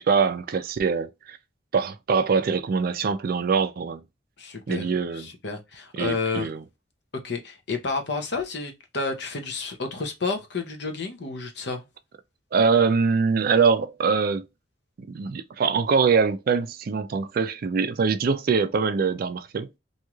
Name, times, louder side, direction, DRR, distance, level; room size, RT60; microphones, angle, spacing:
voice 1, 0.0-1.4 1.7-4.0 4.7-5.3 6.0-6.6 12.5-14.5 15.0-19.7, right 5 dB, 50° right, 0.4 m, -23 dB
voice 2, 4.4-4.9 5.1-6.5 7.2-11.8, left 4 dB, 65° left, 0.8 m, -30 dB
3.0 x 2.7 x 2.3 m
head